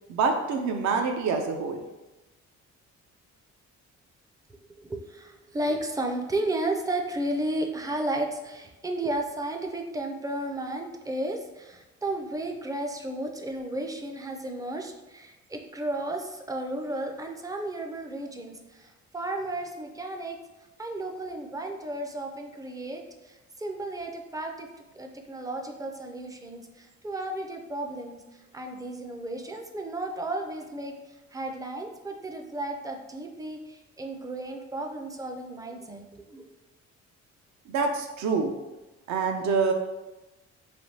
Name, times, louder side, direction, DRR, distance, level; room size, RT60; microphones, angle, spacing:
voice 1, 0.1-1.8 37.7-38.5 39.1-39.7, right 4 dB, 65° right, 4 dB, 0.5 m, -26 dB
voice 2, 4.8-20.4 20.8-24.7 24.9-36.5, right 1 dB, 10° right, 3 dB, 0.4 m, -33 dB
3.3 x 2.6 x 2.7 m, 1.1 s
cardioid pair, 90°, 30 cm